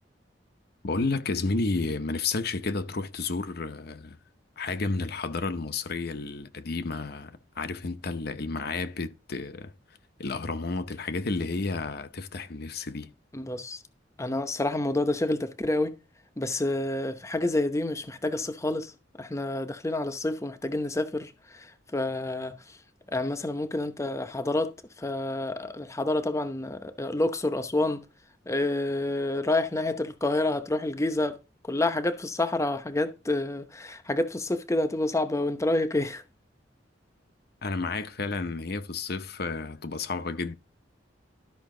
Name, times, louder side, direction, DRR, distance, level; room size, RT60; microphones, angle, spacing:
voice 1, 0.8-4.2 4.6-9.7 10.2-13.1 37.6-40.6, left 3 dB, 60° left, 0.8 m, -31 dB
voice 2, 13.3-13.8 14.2-15.9 16.4-18.9 19.2-22.8 23.1-28.1 28.5-31.4 31.7-36.2, left 2 dB, 15° left, 0.8 m, -28 dB
12.5 x 5.7 x 3.8 m
head